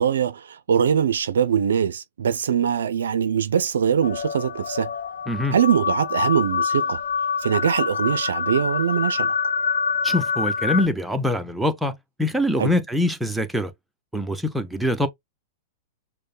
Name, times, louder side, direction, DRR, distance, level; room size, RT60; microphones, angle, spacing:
voice 1, 0.0-4.9 5.5-7.0 7.4-9.3 12.6-12.7, right 8 dB, 75° right, 0.4 m, -22 dB
sound 1, 4.0-10.9, left 5 dB, 75° left, 0.9 m, -26 dB
voice 2, 5.3-5.6 10.0-13.7 14.1-15.1, left 1 dB, 5° right, 0.7 m, -24 dB
6.4 x 2.1 x 2.3 m
hypercardioid pair, 110°, 0 cm